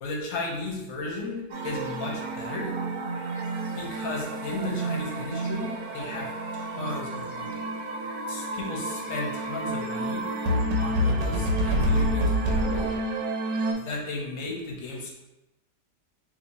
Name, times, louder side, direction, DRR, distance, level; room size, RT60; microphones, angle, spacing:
voice 1, 0.0-2.7 3.8-7.7 8.3-10.2 10.8-13.0 13.8-15.1, left 2 dB, 60° left, -1 dB, 1.0 m, -35 dB
sound 1, 1.5-13.7, right 1 dB, 80° right, 1.2 m, -29 dB
2.8 x 2.7 x 4.1 m, 0.93 s
omnidirectional pair, 1.9 m